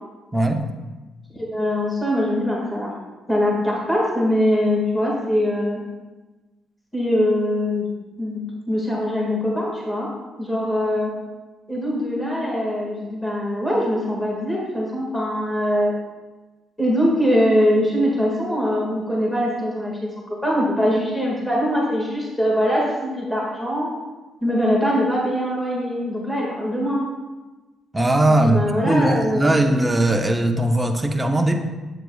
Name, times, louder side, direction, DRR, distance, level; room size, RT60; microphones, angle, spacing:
voice 1, 0.3-0.7 27.9-31.6, right 1 dB, 15° right, 4 dB, 0.7 m, -19 dB
voice 2, 1.3-2.9 3.3-5.8 6.9-7.9 8.2-8.4 8.7-10.1 10.4-11.1 11.7-15.9 16.8-23.9 24.4-27.1 28.3-29.5, equal, 10° left, -4 dB, 2.0 m, -22 dB
8.1 x 7.6 x 2.4 m, 1.2 s
cardioid pair, 90°, 0 cm